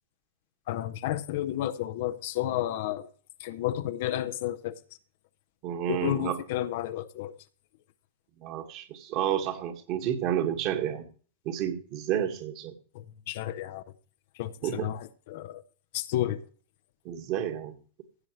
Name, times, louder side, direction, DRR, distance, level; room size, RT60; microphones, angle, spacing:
voice 1, 0.7-3.1 3.4-4.8 5.9-7.4 12.9-13.8 14.3-15.6 15.9-16.5, left 13 dB, 50° left, 0.7 m, -31 dB
voice 2, 5.6-6.4 8.4-11.1 11.5-12.7 14.6-14.9 17.1-17.7, right 10 dB, 40° right, 1.9 m, -30 dB
16.0 x 8.5 x 3.2 m
figure-of-eight pair, 90°, 0 cm